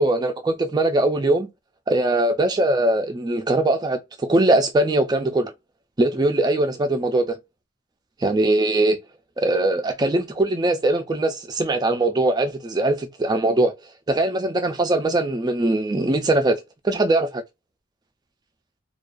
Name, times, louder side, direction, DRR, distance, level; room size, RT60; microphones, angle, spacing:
voice 1, 0.0-1.5 1.9-5.5 6.0-7.4 8.2-9.0 9.4-13.7 14.1-16.6 16.8-17.4, right 2 dB, 20° right, 0.3 m, -21 dB
2.3 x 2.2 x 2.5 m
head